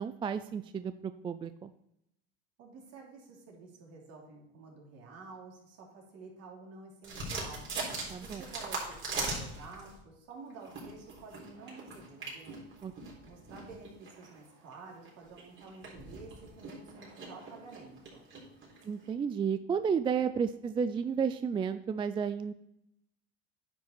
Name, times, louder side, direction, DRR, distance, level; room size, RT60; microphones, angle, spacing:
voice 1, 0.0-1.7 8.1-8.4 12.8-12.9 18.8-22.5, right 6 dB, 15° right, 11 dB, 0.3 m, -32 dB
voice 2, 2.6-7.7 8.2-12.6 13.2-18.3, right 4 dB, 55° right, -1 dB, 3.3 m, -50 dB
sound 1, 7.0-10.0 10.5-19.1, right 3 dB, 40° right, 4.0 m, -41 dB
9.9 x 5.8 x 4.4 m, 0.79 s
supercardioid pair, 100°, 30 cm